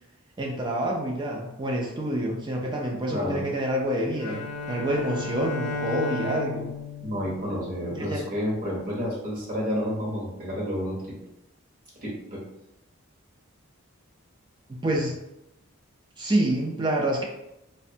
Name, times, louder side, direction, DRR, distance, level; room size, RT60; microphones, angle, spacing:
voice 1, 0.4-6.7 7.9-8.3 14.7-15.2 16.2-17.2, right 1 dB, 20° right, -1 dB, 0.4 m, -27 dB
voice 2, 3.1-3.4 7.0-11.1 12.0-12.4, equal, 40° right, -5 dB, 0.8 m, -30 dB
Bowed string instrument, 4.2-8.4, left 3 dB, 90° left, 0.4 m, -34 dB
2.5 x 2.1 x 2.6 m, 0.87 s
head